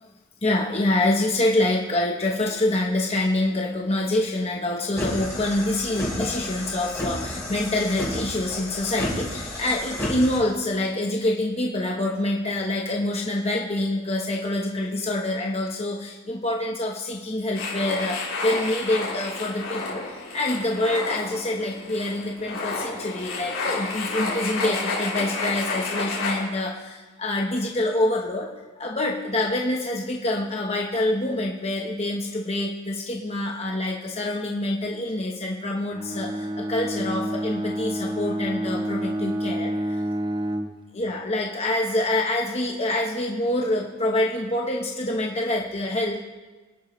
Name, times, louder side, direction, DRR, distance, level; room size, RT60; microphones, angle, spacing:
voice 1, 0.4-28.5 28.8-40.0 40.9-46.2, left 1 dB, 30° left, -1 dB, 1.0 m, -26 dB
sound 1, 5.0-10.4, left 1 dB, 15° left, 3.9 m, -31 dB
sound 2, 17.5-26.4, left 3 dB, 80° left, 3.5 m, -30 dB
Bowed string instrument, 35.9-40.8, right 1 dB, 25° right, 0.7 m, -28 dB
24.5 x 11.0 x 3.2 m, 1.3 s
head